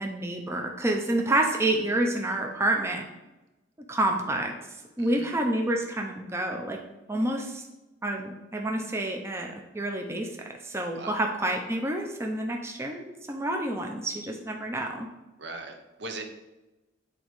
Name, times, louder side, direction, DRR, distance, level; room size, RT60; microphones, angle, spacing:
voice 1, 0.0-3.0 3.9-4.5 5.0-6.8 7.1-7.6 8.0-9.5 9.7-10.3 10.6-15.1, right 1 dB, 15° right, 2 dB, 0.5 m, -28 dB
voice 2, 1.3-1.6 5.0-5.3 10.9-11.2 15.4-16.2, right 3 dB, 60° right, 5 dB, 0.7 m, -40 dB
8.4 x 4.0 x 3.1 m, 1.0 s
head